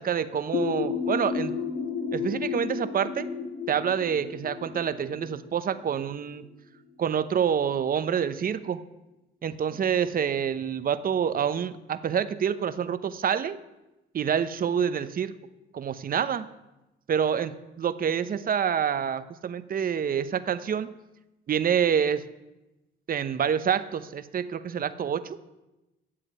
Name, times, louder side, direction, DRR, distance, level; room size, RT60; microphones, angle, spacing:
voice 1, 0.0-1.6 2.1-3.3 3.7-6.4 7.0-8.8 9.4-13.6 14.1-15.4 15.7-16.5 17.1-20.9 21.5-22.2 23.1-25.4, right 8 dB, 45° right, 13 dB, 0.8 m, -27 dB
sound 1, 0.5-6.1, left 6 dB, 65° left, 2.7 m, -32 dB
11.0 x 7.7 x 9.3 m, 1.0 s
cardioid pair, 90°, 20 cm